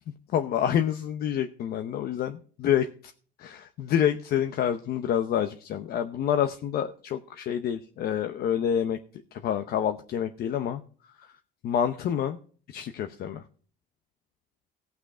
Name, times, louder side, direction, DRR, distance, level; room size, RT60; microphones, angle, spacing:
voice 1, 0.3-2.9 3.4-9.0 9.4-10.8 11.6-12.4 12.7-13.4, left 9 dB, 65° left, 8 dB, 0.9 m, -27 dB
17.0 x 6.0 x 4.9 m, 0.42 s
cardioid pair, 110°, 17 cm